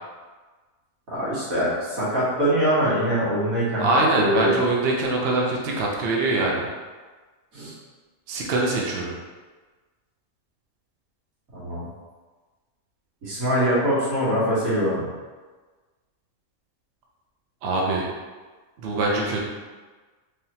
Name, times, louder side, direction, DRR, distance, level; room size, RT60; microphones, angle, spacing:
voice 1, 1.1-4.5 7.5-7.8 11.5-11.9 13.2-15.1, equal, 85° right, -9 dB, 1.9 m, -23 dB
voice 2, 3.8-6.7 8.3-9.1 17.6-18.1 18.8-19.4, right 2 dB, 55° right, -2 dB, 0.8 m, -23 dB
3.5 x 3.5 x 2.8 m, 1.4 s
omnidirectional pair, 1.4 m